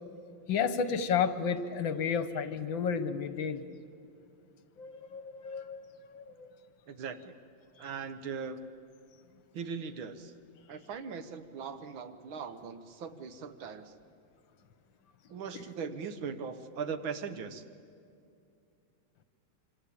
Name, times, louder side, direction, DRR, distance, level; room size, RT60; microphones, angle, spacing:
voice 1, 0.5-3.6 4.8-6.5, left 6 dB, 70° left, 12 dB, 1.8 m, -32 dB
voice 2, 6.9-7.3 7.8-8.7 9.5-10.3 10.7-13.9 15.3-17.6, right 6 dB, 75° right, 10 dB, 2.0 m, -39 dB
25.5 x 25.5 x 8.6 m, 2.5 s
omnidirectional pair, 2.2 m